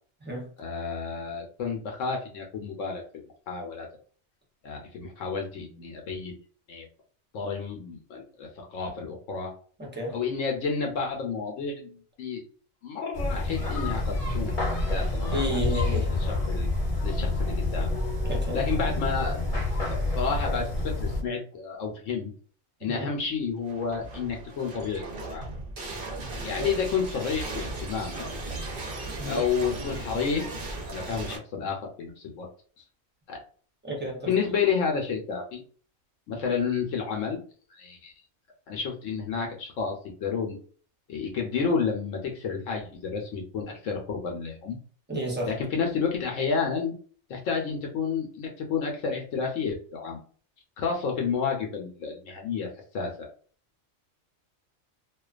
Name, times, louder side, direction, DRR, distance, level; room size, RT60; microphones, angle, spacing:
voice 1, 0.6-3.0 3.5-3.9 4.6-6.4 6.7-6.9 7.3-9.5 10.1-12.4 12.8-14.5 14.9-16.7 17.0-17.9 18.5-19.4 19.9-22.3 22.8-25.5 26.4-28.2 29.2-30.5 30.9-32.5 33.3-33.4 34.2-35.6 36.3-37.4 37.7-38.1 38.7-40.6 41.1-44.8 45.4-46.9 47.3-50.2 50.8-52.7 52.9-53.3, left 5 dB, 75° left, 0.9 m, -30 dB
voice 2, 9.8-10.2 15.3-16.1 18.3-18.6 22.8-23.1 26.6-26.7 29.2-29.4 33.8-34.3 45.1-45.5, equal, 15° right, 0.3 m, -31 dB
sound 1, 13.1-21.2, left 2 dB, 35° left, 0.6 m, -28 dB
sound 2, 23.6-31.4, right 2 dB, 55° right, 0.6 m, -37 dB
2.4 x 2.2 x 2.3 m
omnidirectional pair, 1.4 m